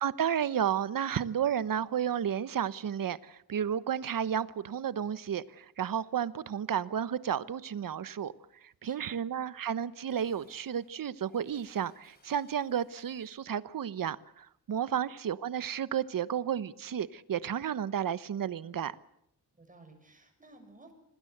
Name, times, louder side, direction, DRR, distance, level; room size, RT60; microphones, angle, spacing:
voice 1, 0.0-8.3 8.6-19.0, right 9 dB, 55° right, 16 dB, 1.1 m, -32 dB
voice 2, 8.8-9.3 14.9-15.0 19.5-20.9, right 2 dB, 20° right, 6 dB, 6.4 m, -56 dB
Dishes pots and pans, 9.7-13.5, left 2 dB, 25° left, 7.7 m, -66 dB
26.5 x 20.0 x 8.0 m, 0.72 s
wide cardioid pair, 110°, 39 cm